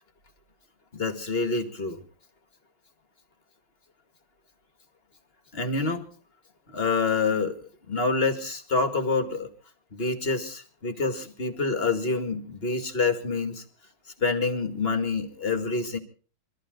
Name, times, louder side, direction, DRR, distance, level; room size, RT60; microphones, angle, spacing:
voice 1, 0.9-2.0 5.5-6.0 6.7-9.5 9.9-13.6 14.2-16.0, left 4 dB, 30° left, 7 dB, 2.2 m, -27 dB
24.0 x 14.5 x 3.8 m, 0.39 s
omnidirectional pair, 2.3 m